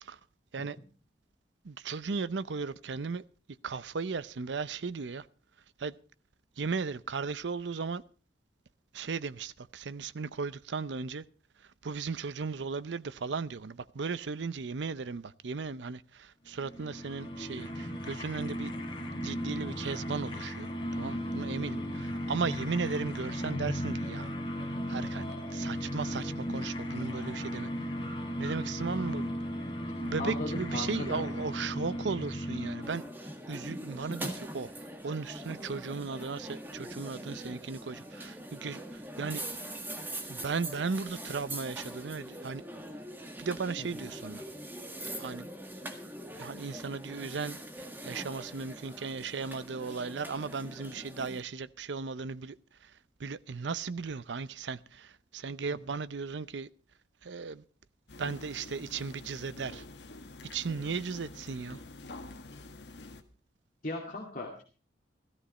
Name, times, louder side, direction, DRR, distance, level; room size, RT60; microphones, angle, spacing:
voice 1, 1.6-3.2 3.6-5.2 5.8-5.9 6.6-8.0 8.9-11.2 11.8-18.7 19.2-24.3 24.9-27.7 28.4-29.3 30.1-33.0 33.5-34.7 35.0-39.4 40.3-42.6 43.4-44.4 45.2-45.5 46.4-52.6 53.2-56.7 57.2-57.6 58.2-59.8 60.5-61.8, right 4 dB, 85° right, 0.6 m, -36 dB
sound 1, 16.5-33.2, equal, 30° left, 3.0 m, -36 dB
voice 2, 30.2-31.3 43.8-43.9 63.8-64.6, left 2 dB, 45° left, 2.4 m, -38 dB
sound 2, 32.8-51.4, right 1 dB, 10° right, 1.7 m, -42 dB
sound 3, 58.1-63.2, left 2 dB, 75° left, 1.6 m, -47 dB
15.5 x 13.5 x 4.2 m
head